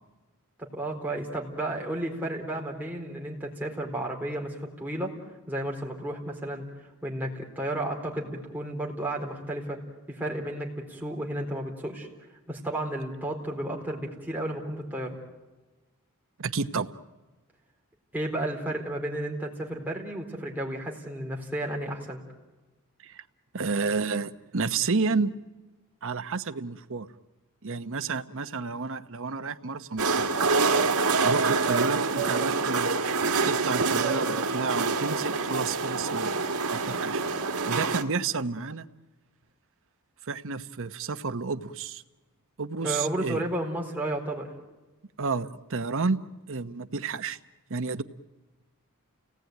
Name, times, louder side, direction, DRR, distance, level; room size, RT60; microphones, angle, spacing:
voice 1, 0.7-5.1 5.5-9.8 10.1-12.1 12.5-15.2 18.1-22.2 42.8-44.5, right 1 dB, 10° right, -1 dB, 4.1 m, -32 dB
voice 2, 16.4-16.9 23.0-23.2 23.5-25.3 26.0-27.1 27.6-30.3 31.2-32.9 33.4-36.3 36.7-37.2 37.7-38.8 40.2-42.0 42.6-43.4 45.2-47.4 47.7-48.0, right 4 dB, 60° right, 9 dB, 1.0 m, -30 dB
sound 1, 30.0-38.0, right 4 dB, 90° right, 1.8 m, -26 dB
30.0 x 18.5 x 9.3 m, 1.2 s
head